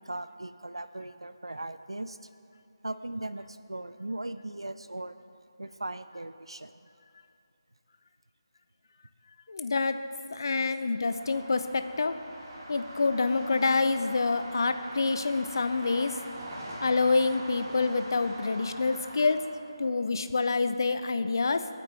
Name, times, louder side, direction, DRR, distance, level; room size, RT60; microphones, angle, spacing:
voice 1, 0.0-2.2 2.8-5.1 5.6-6.7, right 2 dB, 90° right, 11 dB, 0.6 m, -38 dB
voice 2, 9.5-10.0 10.3-12.2 12.7-16.2 16.8-19.4 19.8-21.7, left 3 dB, 55° left, 10 dB, 0.7 m, -27 dB
sound 1, 11.1-19.3, right 1 dB, 20° right, 3.4 m, -43 dB
27.0 x 9.2 x 3.4 m, 2.6 s
figure-of-eight pair, 160°, 3 cm